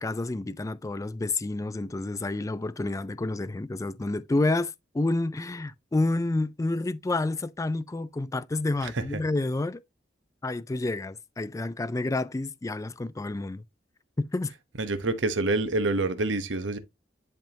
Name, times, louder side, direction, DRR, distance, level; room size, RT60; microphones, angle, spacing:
voice 1, 0.0-9.8 10.4-13.6 14.2-14.5, left 2 dB, 20° left, 0.3 m, -29 dB
voice 2, 14.8-16.8, right 2 dB, 90° right, 1.0 m, -27 dB
10.5 x 3.5 x 2.8 m
head